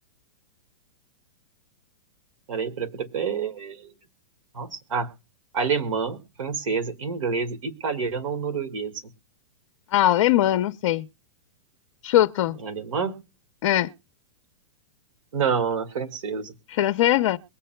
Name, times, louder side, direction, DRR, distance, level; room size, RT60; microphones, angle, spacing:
voice 1, 2.5-3.9 4.5-5.1 5.5-8.9 12.6-13.2 15.3-16.5, right 6 dB, 85° right, 2.0 m, -28 dB
voice 2, 9.9-11.1 12.0-12.6 13.6-13.9 16.7-17.4, left 13 dB, 60° left, 0.6 m, -21 dB
22.0 x 7.5 x 2.2 m
hypercardioid pair, 140°, 16 cm